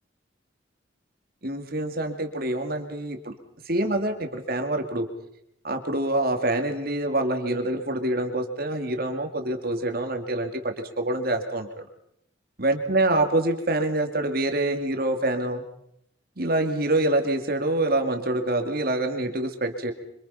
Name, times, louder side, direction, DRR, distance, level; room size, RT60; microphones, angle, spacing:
voice 1, 1.4-3.3 3.7-5.1 5.6-11.7 12.6-15.6 16.4-19.9, right 1 dB, 50° right, 6 dB, 2.4 m, -26 dB
25.5 x 25.5 x 5.6 m, 0.75 s
head